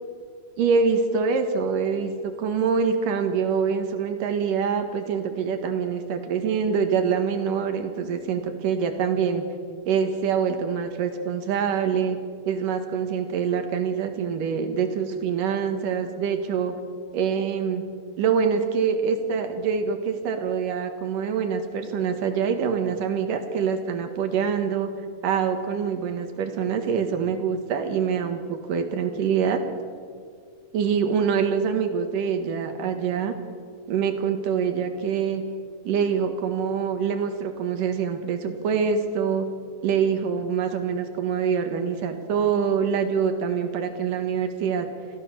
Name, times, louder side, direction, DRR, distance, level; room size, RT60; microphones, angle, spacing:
voice 1, 0.6-9.4 9.9-12.2 12.5-16.7 17.1-17.8 18.2-24.9 25.2-29.6 30.7-33.3 33.9-35.4 35.8-39.5 39.8-44.9, right 6 dB, 90° right, 6 dB, 3.2 m, -25 dB
27.0 x 14.5 x 6.7 m, 2.1 s
omnidirectional pair, 3.7 m